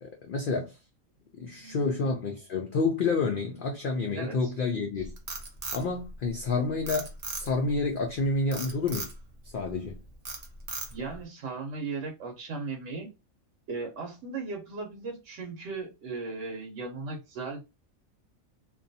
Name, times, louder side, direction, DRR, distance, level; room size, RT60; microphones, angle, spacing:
voice 1, 0.0-0.8 1.4-5.1 5.7-9.1 9.5-10.0, left 3 dB, 75° left, 0.4 m, -29 dB
voice 2, 1.4-2.0 4.2-4.5 10.9-13.1 13.7-17.7, right 4 dB, 70° right, 1.0 m, -37 dB
Frog, 5.0-6.5 6.9-7.7 8.5-9.2 9.6-9.9 10.2-11.2, right 3 dB, 50° right, 0.4 m, -37 dB
2.5 x 2.2 x 2.6 m
omnidirectional pair, 1.4 m